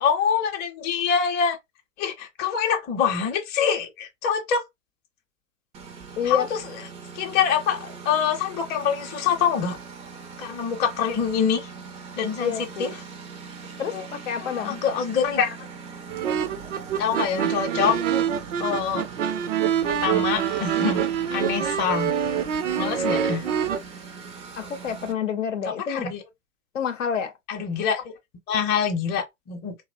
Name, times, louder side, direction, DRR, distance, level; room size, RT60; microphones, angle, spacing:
voice 1, 0.0-1.6 2.0-4.6 6.2-6.6 7.1-9.8 10.4-11.7 12.2-12.9 13.9-14.1 14.4-15.7 17.0-18.0 18.6-19.0 20.0-21.0 21.3-22.1 22.8-23.5 25.6-26.2 27.5-28.1 28.5-29.8, left 7 dB, 30° left, 0.6 m, -25 dB
Engine, 5.7-25.1, right 5 dB, 20° right, 0.3 m, -41 dB
voice 2, 6.2-6.5 12.4-12.9 13.8-14.7 24.6-26.0 26.7-27.3, left 7 dB, 90° left, 0.6 m, -28 dB
sound 1, 16.1-23.8, right 8 dB, 85° right, 0.5 m, -26 dB
2.7 x 2.0 x 2.4 m
hypercardioid pair, 95°, 37 cm